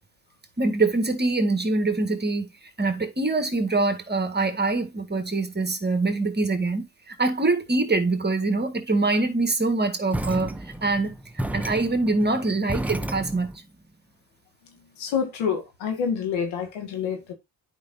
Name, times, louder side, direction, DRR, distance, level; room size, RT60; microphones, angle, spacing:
voice 1, 0.6-11.2 11.5-13.5, right 3 dB, 20° right, 1.8 m, -24 dB
sound 1, 10.1-13.6, right 1 dB, 5° right, 0.7 m, -32 dB
voice 2, 15.0-17.3, left 7 dB, 85° left, 2.0 m, -27 dB
9.4 x 5.1 x 2.7 m
supercardioid pair, 60°, 45 cm